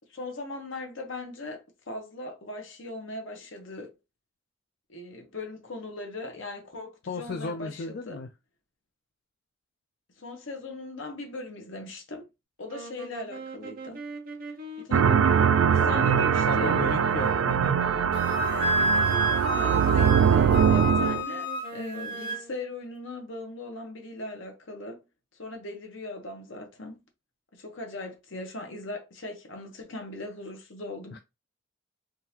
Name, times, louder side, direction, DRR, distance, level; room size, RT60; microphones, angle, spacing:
voice 1, 0.1-3.9 4.9-8.2 10.2-12.3 12.6-14.1 14.8-15.1 15.7-16.7 19.5-25.0 25.4-27.0 27.5-31.2, left 2 dB, 70° left, 1.0 m, -39 dB
voice 2, 7.1-8.3 15.0-15.3 15.7-15.8 16.1-17.6 31.1-31.2, left 4 dB, 50° left, 0.4 m, -35 dB
sound 1, 12.6-22.6, right 2 dB, 45° right, 0.8 m, -40 dB
sound 2, 14.9-21.2, right 7 dB, 85° right, 0.3 m, -22 dB
Wind instrument woodwind instrument, 18.1-22.4, right 1 dB, 25° left, 1.0 m, -29 dB
3.7 x 2.6 x 2.8 m
head